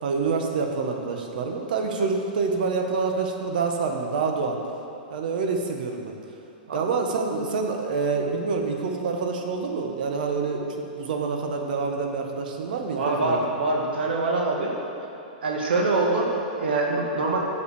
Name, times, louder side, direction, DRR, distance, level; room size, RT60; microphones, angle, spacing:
voice 1, 0.0-4.6 5.1-6.1 6.7-13.4, right 4 dB, 60° right, 3 dB, 1.0 m, -27 dB
voice 2, 12.9-14.7 15.4-17.4, right 2 dB, 85° right, -1 dB, 1.5 m, -24 dB
6.6 x 5.4 x 6.9 m, 2.7 s
hypercardioid pair, 160°, 5 cm